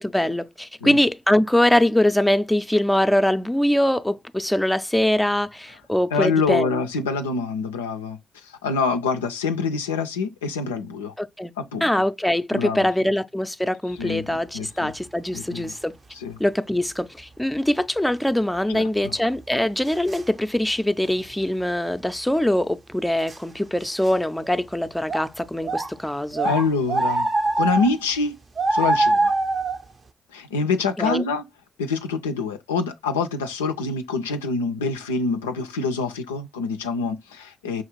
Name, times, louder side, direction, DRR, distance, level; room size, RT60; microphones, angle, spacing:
voice 1, 0.0-6.8 11.2-11.5 11.8-15.9 16.4-26.5 31.0-31.2, left 1 dB, 5° left, 0.4 m, -23 dB
voice 2, 6.1-11.1 11.6-11.8 12.5-12.9 14.0-14.9 15.3-15.7 16.1-16.4 18.7-19.1 26.4-27.3 27.6-28.4 28.7-29.3 30.3-31.4 31.8-37.8, left 4 dB, 90° left, 0.3 m, -26 dB
sound 1, 15.6-15.7 19.0-19.1 19.9-20.3 21.3-21.4 23.3-23.4 23.8-24.1 24.4-24.5 25.1-25.3 25.6-25.9 26.3-28.0 28.6-29.8, right 2 dB, 40° right, 0.5 m, -23 dB
5.6 x 2.3 x 3.0 m
hypercardioid pair, 40°, 0 cm